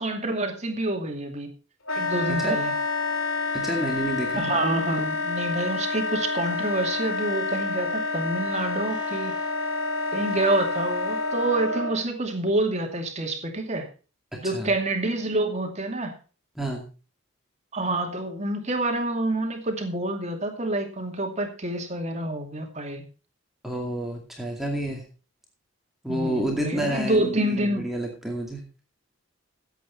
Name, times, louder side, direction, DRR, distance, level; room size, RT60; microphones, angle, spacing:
voice 1, 0.0-1.5 2.0-2.7 4.4-9.4 10.1-13.9 14.4-16.1 17.7-23.0 26.1-27.9, right 2 dB, 30° right, 4 dB, 2.4 m, -27 dB
Wind instrument woodwind instrument, 1.9-12.0, left 3 dB, 65° left, 2.5 m, -28 dB
voice 2, 3.5-4.4 14.3-14.7 16.6-16.9 23.6-25.0 26.0-28.6, right 1 dB, ahead, 0 dB, 2.3 m, -29 dB
15.5 x 8.3 x 4.3 m, 0.35 s
head